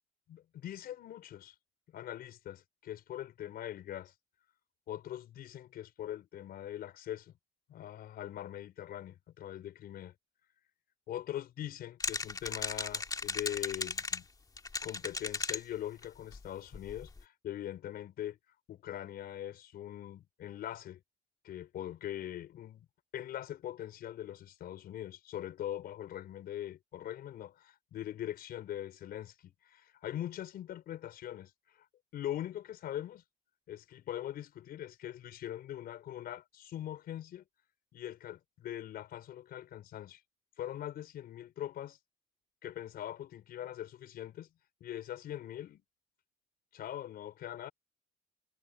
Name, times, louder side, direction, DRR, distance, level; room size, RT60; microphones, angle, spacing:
voice 1, 0.3-1.5 1.9-4.1 4.9-7.3 7.7-10.1 11.1-14.3 14.8-18.4 18.7-21.0 21.4-22.9 23.1-31.9 32.1-33.2 33.7-37.4 37.9-40.2 40.6-42.0 42.6-44.5 44.8-45.8 46.7-47.7, left 11 dB, 65° left, 5.3 m, -42 dB
sound 1, 12.0-14.2 14.6-15.6 16.0-16.1 16.3-16.5 16.7-17.2, left 4 dB, 20° left, 2.5 m, -36 dB
cardioid pair, 110°, 17 cm